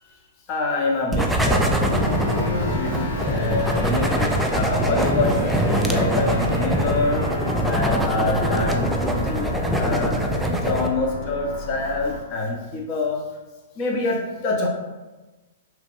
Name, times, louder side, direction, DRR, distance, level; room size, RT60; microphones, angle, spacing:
voice 1, 0.5-13.2 13.8-14.7, left 3 dB, 40° left, 0 dB, 0.7 m, -26 dB
sound 1, 1.1-10.9, right 1 dB, 5° right, 0.3 m, -23 dB
sound 2, 1.9-12.2, left 1 dB, 80° left, 0.6 m, -31 dB
2.9 x 2.5 x 2.9 m, 1.2 s
hypercardioid pair, 120°, 0 cm